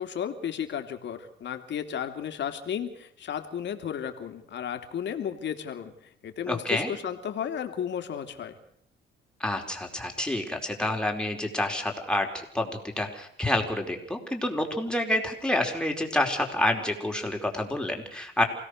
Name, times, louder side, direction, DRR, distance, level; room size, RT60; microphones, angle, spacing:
voice 1, 0.0-5.9 6.2-8.5, left 8 dB, 65° left, 6 dB, 3.0 m, -33 dB
voice 2, 6.5-6.9 9.4-12.7 13.0-18.4, left 1 dB, 5° left, 2 dB, 4.8 m, -28 dB
28.0 x 17.5 x 6.7 m, 0.64 s
cardioid pair, 90°, 20 cm